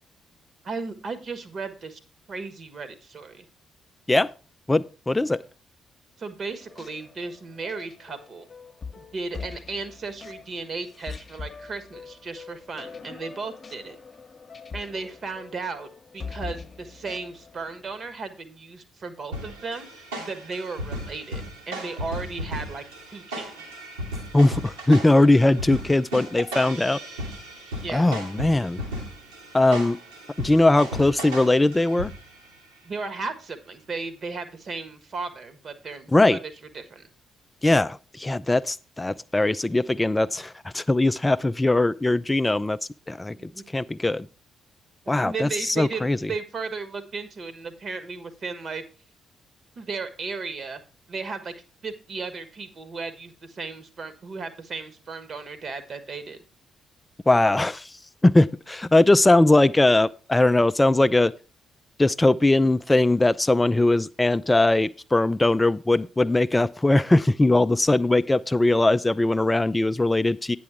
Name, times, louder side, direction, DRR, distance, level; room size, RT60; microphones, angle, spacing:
voice 1, 0.6-2.0 2.3-3.4 6.2-8.5 9.0-14.0 14.7-15.9 16.1-22.8 23.1-23.5 27.8-28.1 32.8-36.4 36.7-37.0 43.4-43.6 45.2-48.8 49.8-50.8 51.1-51.5 51.8-56.4, right 4 dB, 45° right, 1.3 m, -35 dB
voice 2, 4.7-5.4 24.3-27.0 27.9-28.8 29.5-30.0 30.4-32.1 36.1-36.4 37.6-42.8 43.1-43.4 43.7-44.3 45.1-46.3 57.3-57.9 58.2-61.3 62.0-70.6, left 2 dB, 15° left, 0.4 m, -20 dB
sound 1, 6.6-18.2, left 5 dB, 35° left, 1.0 m, -42 dB
sound 2, 19.3-32.5, equal, 75° right, 1.8 m, -36 dB
9.4 x 6.2 x 4.9 m
figure-of-eight pair, 40°, 0 cm